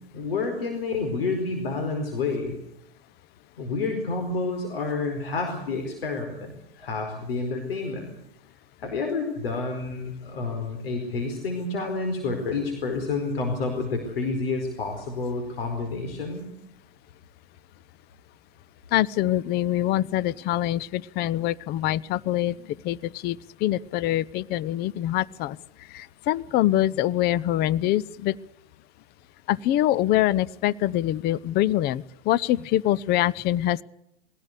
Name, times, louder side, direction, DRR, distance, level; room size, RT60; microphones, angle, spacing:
voice 1, 0.1-2.5 3.6-8.1 8.8-16.5, left 3 dB, 75° left, 4 dB, 4.8 m, -29 dB
voice 2, 18.9-22.6 22.8-25.6 25.9-28.4 29.5-33.8, left 14 dB, 35° left, 21 dB, 0.7 m, -24 dB
22.0 x 17.0 x 8.2 m, 0.83 s
hypercardioid pair, 110°, 29 cm